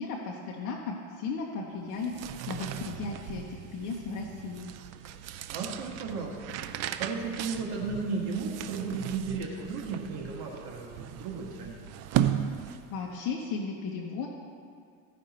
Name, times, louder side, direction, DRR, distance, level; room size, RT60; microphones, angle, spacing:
voice 1, 0.0-4.7 12.9-14.3, left 4 dB, 40° left, -1 dB, 1.1 m, -35 dB
sound 1, 1.9-13.1, right 11 dB, 40° right, 0.4 m, -36 dB
voice 2, 5.5-11.8, right 4 dB, 55° right, -1 dB, 1.8 m, -35 dB
15.5 x 5.3 x 4.3 m, 2.2 s
supercardioid pair, 120°, 45 cm